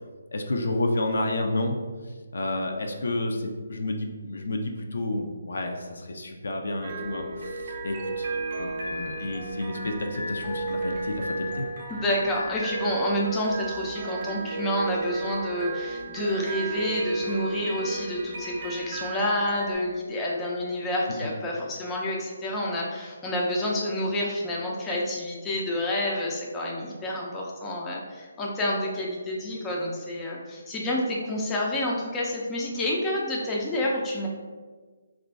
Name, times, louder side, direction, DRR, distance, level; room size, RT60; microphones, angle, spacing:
voice 1, 0.3-1.8 2.3-8.3 8.6-11.7 21.2-21.3, left 2 dB, 70° left, 3 dB, 0.5 m, -30 dB
sound 1, 6.8-19.7, right 3 dB, 40° right, 0.5 m, -33 dB
voice 2, 11.9-34.3, left 1 dB, 10° left, -3 dB, 0.4 m, -29 dB
2.9 x 2.5 x 3.3 m, 1.5 s
hypercardioid pair, 160°, 0 cm